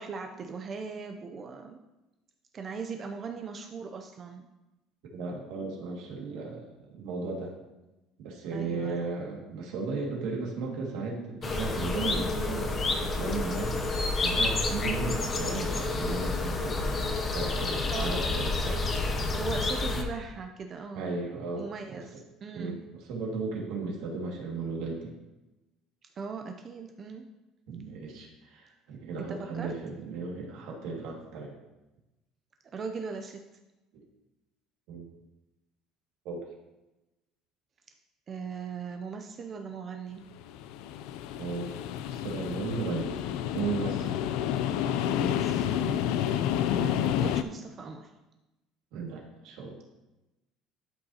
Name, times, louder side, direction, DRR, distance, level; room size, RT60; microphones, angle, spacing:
voice 1, 0.0-1.8 2.5-4.5 8.5-9.0 17.9-18.4 18.6-18.8 19.3-21.2 21.6-22.8 26.0-27.3 29.3-29.7 32.7-33.4 38.3-40.2 45.1-46.2 46.8-48.1, right 5 dB, 30° right, 5 dB, 0.4 m, -39 dB
voice 2, 5.1-7.5 8.2-13.8 14.2-17.0 17.3-18.9 20.9-22.2 22.5-25.1 27.7-31.5 33.9-34.0 34.9-35.1 36.2-36.4 41.4-41.6 42.1-43.1 43.5-44.1 48.9-49.8, right 4 dB, 70° right, -1 dB, 2.0 m, -35 dB
sound 1, 11.4-20.0, left 3 dB, 25° left, 0.7 m, -29 dB
sound 2, 40.4-47.4, left 10 dB, 75° left, 0.4 m, -29 dB
12.0 x 5.4 x 2.8 m, 1.0 s
cardioid pair, 155°, 0 cm